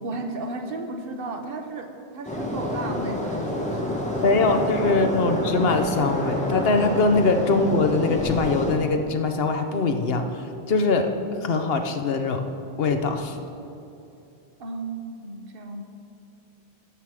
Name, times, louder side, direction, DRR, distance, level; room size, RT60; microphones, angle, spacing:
voice 1, 0.0-4.9 14.6-15.8, right 2 dB, 65° right, 5 dB, 1.1 m, -35 dB
sound 1, 2.2-8.7, left 1 dB, 5° left, 1.4 m, -28 dB
voice 2, 4.2-11.1 11.4-12.4 12.8-13.4, left 3 dB, 70° left, 6 dB, 1.0 m, -22 dB
12.5 x 7.2 x 4.8 m, 2.8 s
omnidirectional pair, 1.1 m